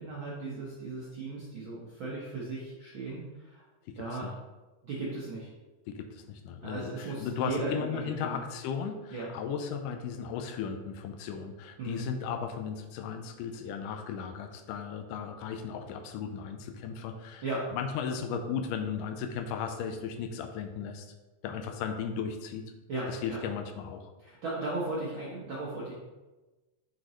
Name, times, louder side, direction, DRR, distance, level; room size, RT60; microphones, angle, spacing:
voice 1, 0.0-3.6 4.0-4.3 4.8-5.5 6.6-8.4 9.1-9.3 11.8-12.1 17.4-17.7 22.9-23.4 24.2-25.9, right 2 dB, 80° right, -6 dB, 1.1 m, -36 dB
voice 2, 5.9-17.4 17.7-21.1 21.4-22.7 23.1-24.1, left 7 dB, 85° left, 6 dB, 2.1 m, -36 dB
8.4 x 3.9 x 3.1 m, 1.1 s
omnidirectional pair, 3.8 m